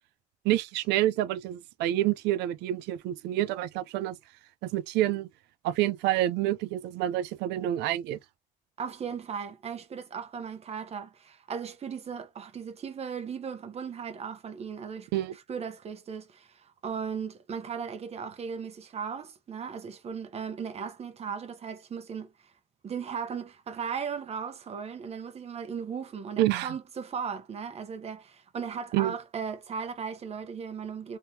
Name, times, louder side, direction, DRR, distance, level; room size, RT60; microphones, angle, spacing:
voice 1, 0.4-4.2 4.6-5.3 5.6-8.2 15.1-15.3 26.4-26.7 28.9-29.1, right 14 dB, 90° right, 0.5 m, -28 dB
voice 2, 8.8-22.5 22.8-31.2, right 6 dB, 40° right, 0.9 m, -37 dB
3.5 x 3.1 x 2.8 m
cardioid pair, 110°, 17 cm